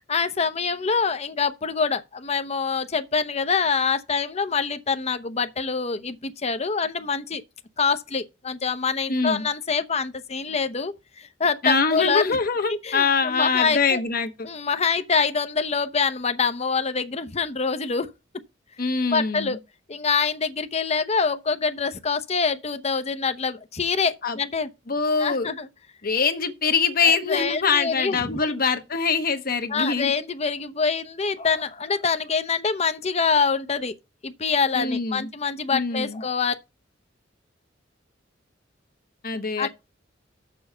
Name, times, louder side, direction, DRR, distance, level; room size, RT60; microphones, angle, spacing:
voice 1, 0.1-7.4 7.8-12.4 12.7-14.0 14.4-18.1 19.1-19.6 19.9-24.7 25.2-25.7 27.0-28.6 29.7-33.9 34.2-36.5 39.6-39.7, left 5 dB, 35° left, 0.8 m, -25 dB
voice 2, 9.1-9.5 11.6-14.3 18.8-19.6 24.2-24.4 24.9-25.5 26.0-30.1 34.7-35.3 35.7-36.2 39.2-39.7, left 5 dB, 50° left, 1.1 m, -24 dB
7.0 x 4.7 x 6.6 m
head